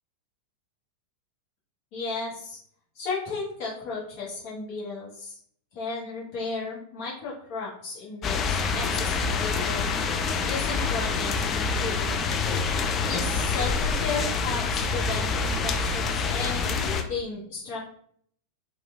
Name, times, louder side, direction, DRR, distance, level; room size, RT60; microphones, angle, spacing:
voice 1, 1.9-2.6 2.9-5.4 5.7-10.0 10.5-12.2 13.0-17.8, left 4 dB, 45° left, -5 dB, 0.8 m, -34 dB
sound 1, 8.2-17.0, left 4 dB, 25° left, 0.3 m, -26 dB
2.9 x 2.1 x 2.2 m, 0.62 s
figure-of-eight pair, 90°, 0 cm